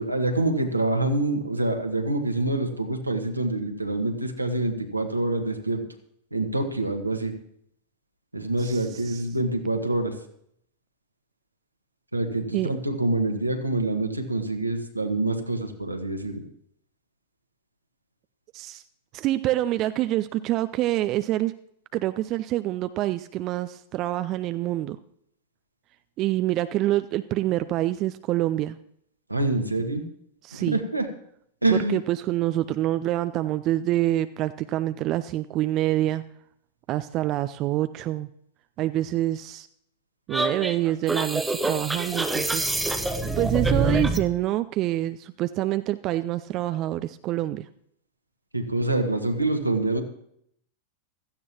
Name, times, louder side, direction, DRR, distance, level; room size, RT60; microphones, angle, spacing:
voice 1, 0.0-5.8 6.3-7.3 8.3-10.1 12.1-16.4 29.3-30.0 30.7-31.1 31.6-32.0 48.5-50.0, right 2 dB, 85° right, 4 dB, 1.5 m, -26 dB
voice 2, 8.6-9.2 12.5-12.7 18.5-18.8 19.1-21.5 21.9-25.0 26.2-28.8 30.4-30.8 31.9-36.2 36.9-38.3 38.8-39.7 40.3-42.7 43.4-47.7, right 15 dB, 35° right, 12 dB, 0.4 m, -26 dB
sound 1, 40.3-44.3, right 2 dB, 5° right, 1.0 m, -26 dB
16.0 x 13.5 x 3.0 m, 0.69 s
figure-of-eight pair, 90°, 0 cm